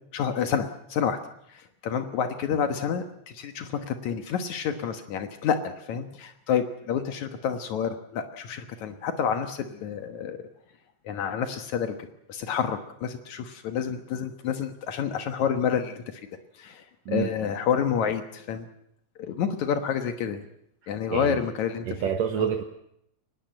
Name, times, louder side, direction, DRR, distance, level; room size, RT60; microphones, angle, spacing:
voice 1, 0.1-1.2 1.5-10.4 11.1-12.0 12.3-16.0 16.6-18.7 19.2-20.4 20.9-21.9 22.4-22.5, left 7 dB, 75° left, 7 dB, 2.6 m, -29 dB
voice 2, 21.1-21.4 21.9-22.6, right 8 dB, 65° right, 5 dB, 2.5 m, -27 dB
24.0 x 20.0 x 7.7 m, 0.76 s
omnidirectional pair, 3.4 m